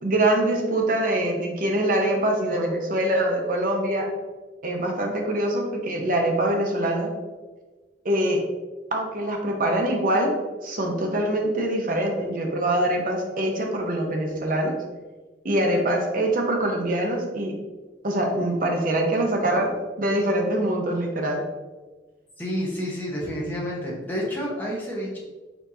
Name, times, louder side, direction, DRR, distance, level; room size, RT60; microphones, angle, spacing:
voice 1, 0.0-4.1 4.6-7.1 8.0-8.4 8.9-10.3 10.6-14.8 15.4-17.5 18.0-19.7 20.0-21.4, right 1 dB, 45° right, 1 dB, 0.7 m, -24 dB
voice 2, 22.4-25.2, equal, 10° left, -5 dB, 1.0 m, -29 dB
4.5 x 4.4 x 2.7 m, 1.3 s
head